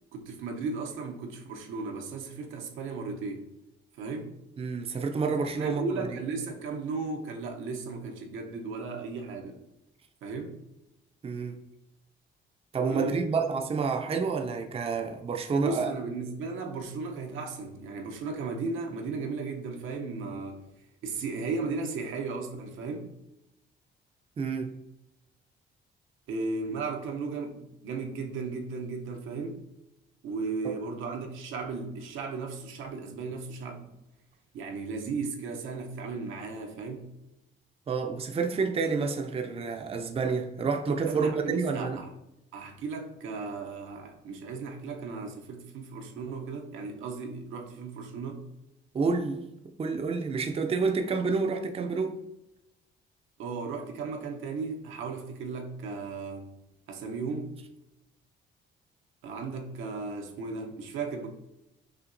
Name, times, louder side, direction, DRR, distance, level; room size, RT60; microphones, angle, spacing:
voice 1, 0.1-3.5 4.0-4.3 5.6-9.6 10.2-10.6 12.9-13.3 15.6-20.6 21.0-23.1 26.3-29.6 30.2-33.9 34.5-37.1 41.1-42.1 42.5-48.5 53.4-56.5 56.9-57.6 59.2-61.3, right 4 dB, 85° right, 0.8 m, -35 dB
voice 2, 4.6-6.1 11.2-11.6 12.7-15.9 24.4-24.8 30.6-30.8 37.9-42.0 48.9-49.4 49.8-52.2, right 4 dB, 30° right, 0.5 m, -29 dB
5.8 x 2.8 x 2.6 m
cardioid pair, 90°, 20 cm